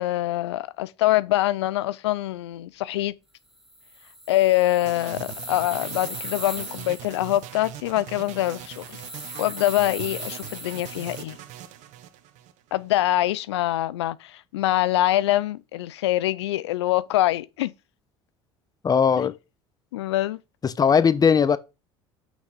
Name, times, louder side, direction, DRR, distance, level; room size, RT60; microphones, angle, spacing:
voice 1, 0.0-3.1 4.3-9.0 9.4-11.4 12.7-17.7 19.2-19.3 19.9-20.4, left 15 dB, 85° left, 0.4 m, -24 dB
sound 1, 3.6-7.5 8.2-11.2, equal, 5° right, 1.0 m, -39 dB
sound 2, 4.9-12.9, right 11 dB, 60° right, 1.0 m, -41 dB
voice 2, 18.8-19.3 20.6-21.6, left 6 dB, 30° left, 0.8 m, -19 dB
6.3 x 6.1 x 5.0 m
hypercardioid pair, 75°, 14 cm